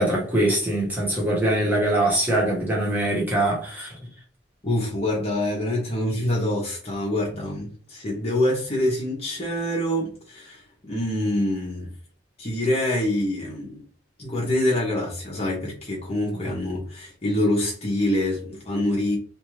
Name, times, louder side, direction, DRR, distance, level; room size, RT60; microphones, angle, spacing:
voice 1, 0.0-3.9 16.3-16.4, right 1 dB, 10° right, 1.0 m, -23 dB
voice 2, 4.6-10.6 10.9-11.9 12.4-13.8 14.2-19.2, left 1 dB, 30° left, 0.8 m, -25 dB
2.6 x 2.4 x 3.0 m
head